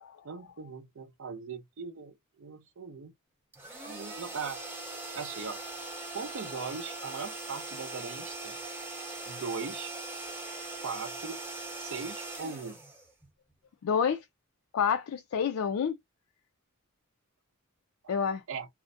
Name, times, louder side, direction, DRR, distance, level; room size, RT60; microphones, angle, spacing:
voice 1, 0.2-3.1 3.9-4.6 5.1-5.6 6.1-8.6 9.2-9.9 10.8-11.4 11.7-12.8 18.5-18.7, right 5 dB, 65° right, 0.6 m, -39 dB
sound 1, 3.5-13.5, right 2 dB, 10° right, 0.7 m, -41 dB
voice 2, 13.8-14.2 14.7-15.9 18.1-18.4, left 7 dB, 70° left, 0.4 m, -28 dB
2.4 x 2.1 x 2.5 m
head